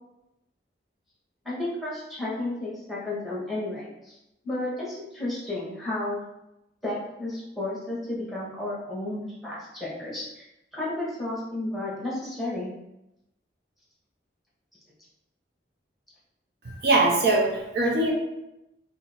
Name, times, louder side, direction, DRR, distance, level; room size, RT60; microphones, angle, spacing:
voice 1, 1.4-4.2 4.4-6.2 6.8-10.4 10.7-12.7, left 2 dB, ahead, -7 dB, 1.1 m, -32 dB
voice 2, 16.6-18.1, right 2 dB, 65° right, -2 dB, 0.7 m, -22 dB
2.8 x 2.6 x 4.2 m, 0.90 s
head